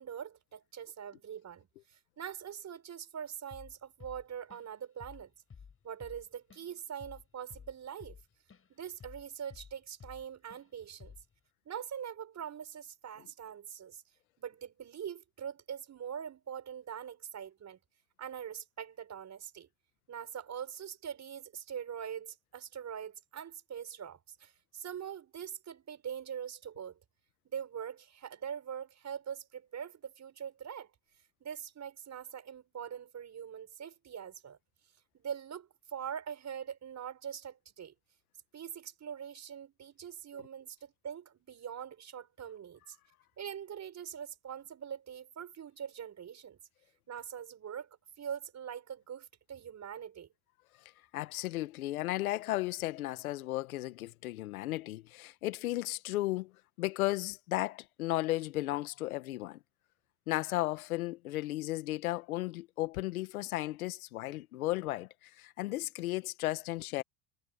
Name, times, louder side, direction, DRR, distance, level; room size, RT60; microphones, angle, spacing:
voice 1, 0.0-5.3 5.8-8.2 8.7-11.2 11.7-14.0 14.4-17.8 18.2-19.7 20.1-27.0 27.5-30.9 31.4-34.6 35.1-37.9 38.5-43.0 43.4-46.6 47.1-47.9 48.2-50.3, right 8 dB, 40° right, 5.7 m, -43 dB
Drum kit / Drum, 3.5-3.8 4.0-4.8 5.0-5.3 5.5-8.7 9.0-10.2 10.5-10.7 11.0-11.3, left 6 dB, 30° left, 6.6 m, -52 dB
voice 2, 51.1-56.5 56.8-59.6 60.3-67.0, left 17 dB, 90° left, 1.5 m, -34 dB
hypercardioid pair, 80°, 42 cm